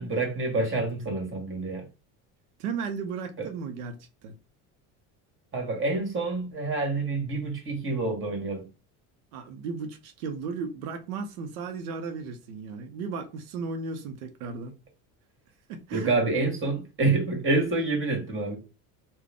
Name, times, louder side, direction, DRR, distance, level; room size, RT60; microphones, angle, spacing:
voice 1, 0.0-1.8 3.4-3.5 5.5-8.6 15.9-18.6, right 3 dB, 30° right, 1.7 m, -27 dB
voice 2, 2.6-4.0 4.2-4.4 9.3-14.7 15.7-16.1, right 5 dB, 90° right, 0.7 m, -35 dB
3.7 x 2.2 x 3.5 m
supercardioid pair, 95°, 41 cm